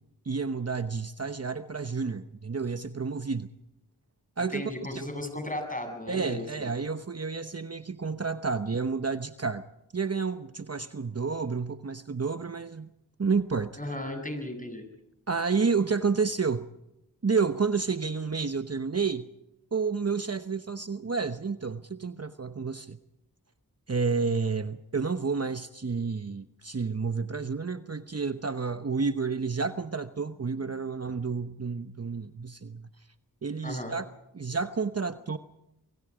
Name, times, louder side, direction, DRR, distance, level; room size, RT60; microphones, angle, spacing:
voice 1, 0.2-3.5 4.4-5.0 6.1-9.6 9.9-12.9 13.2-13.8 15.3-16.7 17.2-19.3 19.7-23.0 23.9-32.9 33.4-34.1 34.3-35.4, right 5 dB, 40° right, 10 dB, 1.0 m, -30 dB
voice 2, 4.5-6.7 13.8-14.8 33.6-33.9, left 1 dB, 20° left, 5 dB, 7.9 m, -35 dB
29.0 x 22.5 x 5.0 m, 0.86 s
cardioid pair, 45°, 39 cm